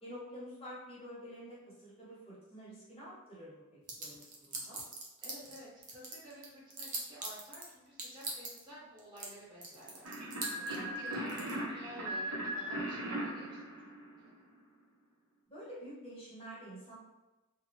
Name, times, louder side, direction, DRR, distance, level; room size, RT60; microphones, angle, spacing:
voice 1, 0.0-4.8 10.5-11.5 15.5-16.9, equal, 25° left, -8 dB, 0.9 m, -49 dB
sound 1, 3.9-5.6 5.8-7.6 8.0-8.6 9.0-9.3 9.6-11.5, right 3 dB, 35° right, 0.5 m, -40 dB
voice 2, 5.2-10.2 10.6-14.3, equal, 20° right, -8 dB, 1.1 m, -52 dB
sound 2, 10.0-14.5, right 1 dB, 85° right, 0.6 m, -38 dB
2.6 x 2.0 x 2.8 m, 1.1 s
head